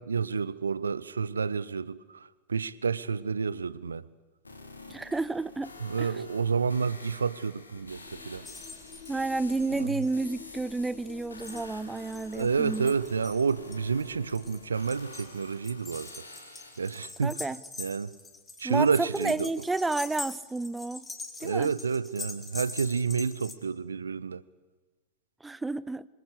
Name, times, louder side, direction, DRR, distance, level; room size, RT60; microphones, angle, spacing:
voice 1, 0.0-4.1 5.8-8.4 9.7-10.0 12.3-16.1 16.8-17.3 17.8-18.1 18.6-19.5 21.4-24.4, right 5 dB, 75° right, 0.9 m, -29 dB
sound 1, 4.4-17.0, left 3 dB, 80° left, 3.4 m, -49 dB
voice 2, 4.9-5.7 6.0-6.1 9.1-12.9 17.2-17.6 18.6-21.1 21.4-21.7 25.4-26.1, right 3 dB, 10° right, 0.8 m, -31 dB
sound 2, 7.7-15.5, left 8 dB, 40° left, 2.2 m, -51 dB
sound 3, 8.4-10.1 10.7-23.5, left 3 dB, 15° left, 3.5 m, -43 dB
26.5 x 25.5 x 8.3 m
figure-of-eight pair, 90°, 0 cm